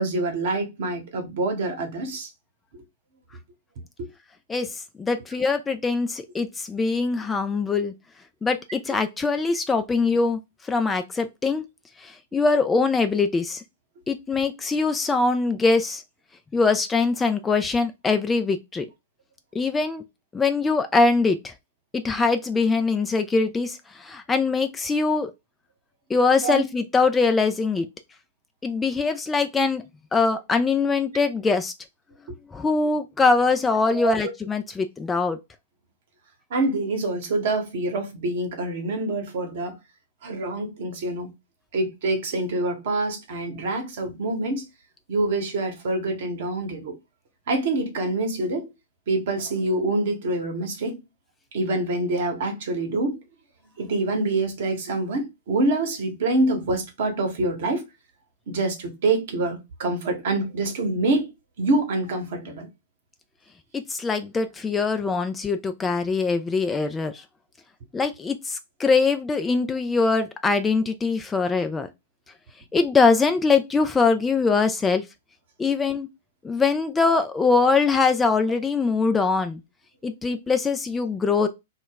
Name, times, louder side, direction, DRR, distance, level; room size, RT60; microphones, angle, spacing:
voice 1, 0.0-2.3 4.0-4.1 26.4-26.6 33.9-34.1 36.5-39.8 40.2-41.3 41.7-44.6 45.1-47.0 47.5-48.7 49.1-51.0 51.5-53.2 53.8-57.8 58.5-61.2 61.6-62.7, right 2 dB, 55° right, 0.9 m, -26 dB
voice 2, 4.5-7.9 8.4-11.6 12.0-13.6 14.1-16.0 16.5-18.8 19.5-20.0 20.3-21.5 21.9-25.3 26.1-27.9 28.6-29.8 30.1-31.7 32.5-35.4 63.7-67.2 67.9-71.9 72.7-75.0 75.6-76.1 76.4-79.6 80.0-81.5, left 4 dB, 15° left, 0.3 m, -22 dB
2.3 x 2.0 x 3.8 m
figure-of-eight pair, 100°, 0 cm